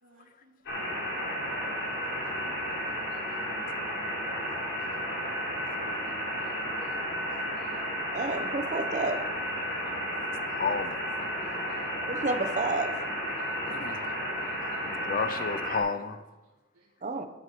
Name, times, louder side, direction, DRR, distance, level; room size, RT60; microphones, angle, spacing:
voice 1, 0.0-1.3 2.3-2.6 3.1-4.1 5.7-5.8 6.0-7.3 7.6-7.8 9.8-9.9 11.2-12.3 13.4-14.8 16.7-16.9, right 2 dB, 80° right, -3 dB, 2.4 m, -59 dB
sound 1, 0.7-15.8, equal, 55° left, 3.4 m, -33 dB
voice 2, 8.1-9.2 12.1-12.9 17.0-17.3, right 3 dB, 35° right, 6 dB, 0.9 m, -30 dB
voice 3, 10.6-11.0 13.6-14.1 14.9-16.2, left 5 dB, 40° left, 11 dB, 0.7 m, -31 dB
11.0 x 8.0 x 6.0 m, 1.1 s
head